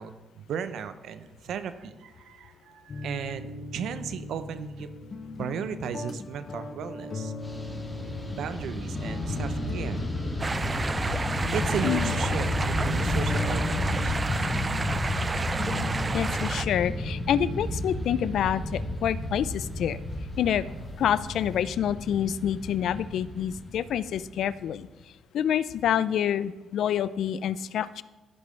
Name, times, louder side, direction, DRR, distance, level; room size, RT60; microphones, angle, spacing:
voice 1, 0.0-4.9 5.4-7.3 8.3-10.1 11.5-14.1, right 7 dB, 75° right, 11 dB, 0.6 m, -35 dB
sound 1, 2.9-21.6, left 3 dB, 40° left, 0.9 m, -39 dB
Fixed-wing aircraft airplane, 7.4-24.8, left 1 dB, 10° left, 2.0 m, -32 dB
sound 2, 10.4-16.6, right 3 dB, 25° right, 0.3 m, -31 dB
voice 2, 16.1-20.0 20.4-20.7 21.0-24.9 25.3-28.0, left 9 dB, 70° left, 16 dB, 0.3 m, -27 dB
15.0 x 5.3 x 3.2 m, 1.1 s
cardioid pair, 90°, 0 cm